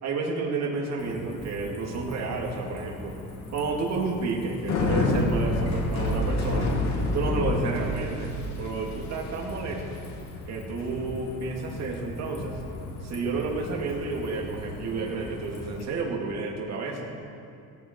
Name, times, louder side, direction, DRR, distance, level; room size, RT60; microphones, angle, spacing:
voice 1, 0.0-3.2 3.5-6.7 7.1-10.0 10.5-12.6 13.0-17.1, right 4 dB, 50° right, -1 dB, 2.7 m, -31 dB
Bicycle, 1.0-15.8, left 2 dB, 50° left, 2.7 m, -31 dB
17.0 x 15.0 x 4.7 m, 2.4 s
cardioid pair, 145°, 35 cm